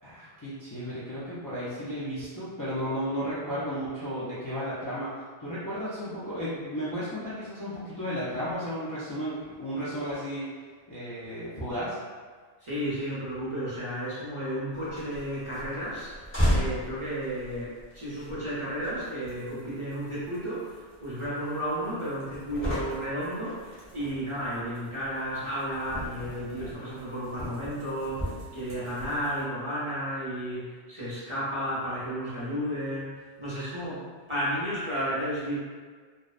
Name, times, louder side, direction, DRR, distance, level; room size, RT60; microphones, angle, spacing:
voice 1, 0.0-5.1 5.4-10.5 10.9-12.0, equal, 35° left, -11 dB, 0.3 m, -34 dB
voice 2, 12.6-33.1 33.4-34.0 34.3-35.6, equal, 30° right, -10 dB, 0.7 m, -33 dB
sound 1, 14.7-29.4, equal, 10° left, 1.0 m, -36 dB
2.6 x 2.0 x 2.4 m, 1.5 s
omnidirectional pair, 1.1 m